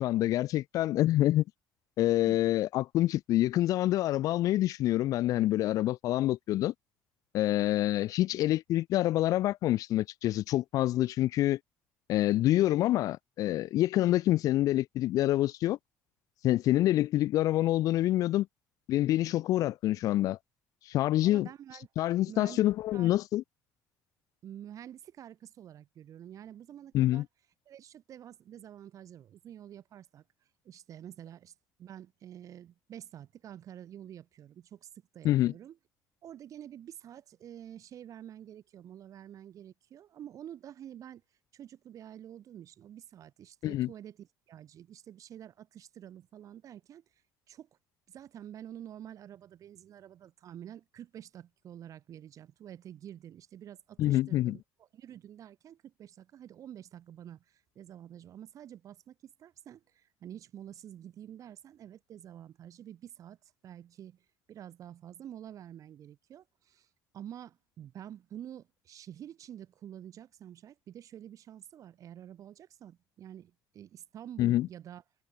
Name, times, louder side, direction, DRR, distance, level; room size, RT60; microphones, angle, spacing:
voice 1, 0.0-1.4 2.0-6.7 7.3-11.6 12.1-15.8 16.4-18.5 18.9-20.4 20.9-21.5 22.0-23.4 26.9-27.2 35.2-35.5 43.6-43.9 54.0-54.6 74.4-74.7, left 14 dB, 60° left, 0.4 m, -26 dB
voice 2, 21.2-21.9 22.3-22.7 22.9-23.2 24.4-27.3 27.7-35.8 36.2-47.7 48.1-75.0, right 10 dB, 55° right, 3.6 m, -48 dB
supercardioid pair, 75°, 7 cm